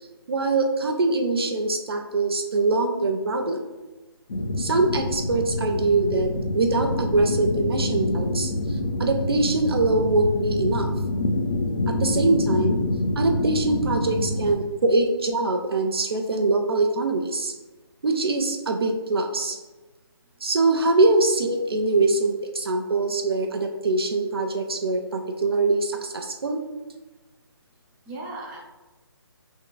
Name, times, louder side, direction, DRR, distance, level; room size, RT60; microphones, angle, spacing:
voice 1, 0.3-3.6 4.6-10.9 11.9-12.8 13.2-17.5 18.0-19.6 20.4-26.6, right 2 dB, 70° right, 3 dB, 0.5 m, -23 dB
sound 1, 4.3-14.5, left 1 dB, 50° left, 0.4 m, -26 dB
voice 2, 13.8-14.8 28.1-28.6, right 2 dB, 10° right, -3 dB, 0.5 m, -40 dB
4.3 x 3.7 x 2.2 m, 1.2 s
figure-of-eight pair, 155°, 13 cm